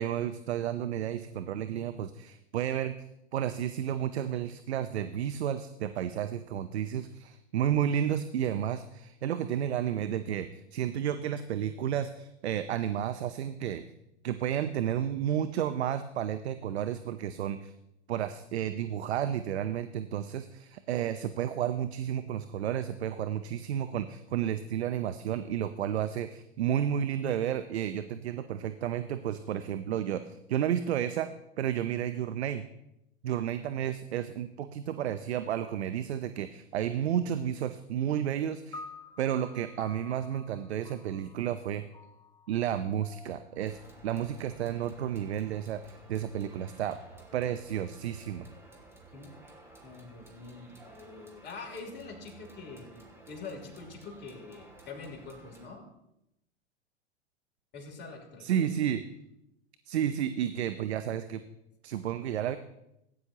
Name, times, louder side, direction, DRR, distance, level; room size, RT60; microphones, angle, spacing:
voice 1, 0.0-3.0 3.3-13.9 14.2-17.7 18.1-31.3 31.6-32.6 33.2-38.8 39.2-41.8 42.5-47.0 47.3-48.5 58.4-59.0 59.9-61.4 61.8-62.6, right 10 dB, 70° right, 11 dB, 0.7 m, -32 dB
sound 1, 38.7-45.2, left 3 dB, 10° left, 1.1 m, -51 dB
sound 2, 43.7-55.7, right 2 dB, 5° right, 2.5 m, -54 dB
voice 2, 49.8-55.8 57.7-58.7, left 4 dB, 30° left, 0 dB, 3.3 m, -45 dB
17.0 x 9.6 x 2.9 m, 0.84 s
hypercardioid pair, 100°, 33 cm